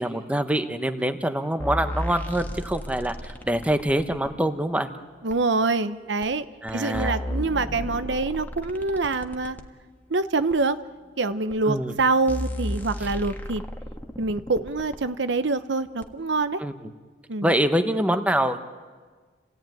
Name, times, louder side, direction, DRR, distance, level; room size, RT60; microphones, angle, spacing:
voice 1, 0.0-4.9 6.6-7.2 11.7-11.9 16.6-16.9 17.4-18.6, right 1 dB, 10° right, 8 dB, 1.1 m, -25 dB
sound 1, 1.6-4.3 5.3-5.4 6.2-6.3 6.7-9.7 10.5-10.6 11.5-11.6 12.0-12.1 12.3-15.0 16.0-16.1, equal, 10° left, 1.5 m, -33 dB
voice 2, 5.2-6.4 6.7-9.6 10.1-10.8 11.2-13.6 14.2-16.6 17.3-17.5, right 3 dB, 80° right, 12 dB, 0.9 m, -25 dB
29.5 x 17.5 x 9.2 m, 1.5 s
head